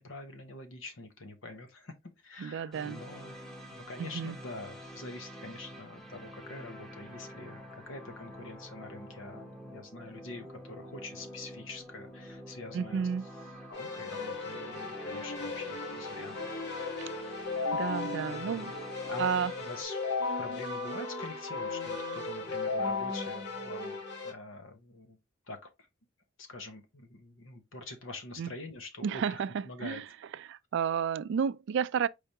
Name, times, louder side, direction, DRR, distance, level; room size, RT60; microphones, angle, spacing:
voice 1, 0.0-1.9 2.2-3.4 3.7-13.1 13.7-17.1 18.3-18.7 19.1-19.3 19.6-20.0 20.4-24.0 24.2-25.2 25.5-25.7 26.4-30.0, left 2 dB, 80° left, 1.1 m, -45 dB
voice 2, 2.4-3.0 4.0-4.4 12.7-13.3 17.0-17.1 17.7-18.7 19.2-19.5 28.4-28.5 29.0-30.0 30.5-32.1, right 7 dB, 65° right, 0.3 m, -31 dB
sound 1, 2.7-19.8, equal, ahead, 0.9 m, -47 dB
Keyboard (musical), 13.7-24.3, left 3 dB, 60° left, 1.2 m, -36 dB
4.8 x 3.4 x 2.8 m
head